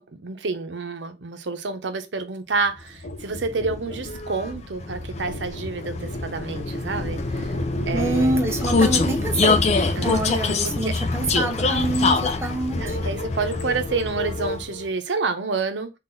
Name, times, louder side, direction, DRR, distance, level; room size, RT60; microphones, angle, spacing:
voice 1, 0.0-7.5 7.9-8.4 10.0-10.3 10.6-11.0 12.8-16.0, right 4 dB, 90° right, 0.7 m, -29 dB
sound 1, 3.0-8.6 9.5-9.6, left 1 dB, 75° left, 0.7 m, -39 dB
Vehicle, 3.0-14.9, left 3 dB, 40° left, 0.4 m, -25 dB
voice 2, 7.9-9.6 10.0-13.2, right 2 dB, 15° right, 0.5 m, -26 dB
3.9 x 2.4 x 3.7 m
head